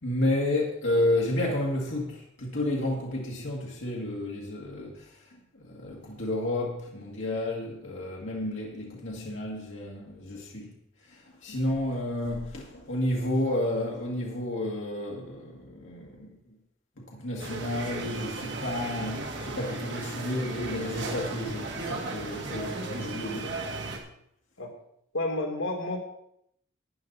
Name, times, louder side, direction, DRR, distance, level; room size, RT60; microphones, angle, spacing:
voice 1, 0.0-10.8 11.0-16.6 17.0-23.6 23.9-24.0, left 1 dB, 70° left, 1.9 m, -31 dB
sound 1, 17.4-24.0, right 2 dB, 60° right, 1.8 m, -36 dB
voice 2, 25.1-26.0, left 2 dB, 85° left, 2.3 m, -31 dB
12.5 x 9.5 x 4.1 m
head